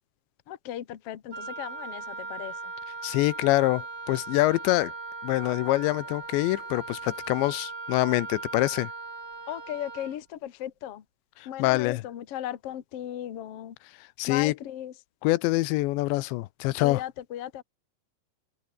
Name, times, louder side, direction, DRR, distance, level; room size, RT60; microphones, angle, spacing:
voice 1, 0.5-2.5 9.5-11.0 11.4-13.7 14.3-14.9 16.8-17.6, left 12 dB, 60° left, 1.5 m, -36 dB
Wind instrument woodwind instrument, 1.3-10.2, right 3 dB, 25° right, 4.4 m, -39 dB
voice 2, 3.0-4.9 5.2-8.9 11.6-12.0 14.2-14.6 15.2-17.0, left 19 dB, 90° left, 3.0 m, -25 dB
open air
omnidirectional pair, 5.2 m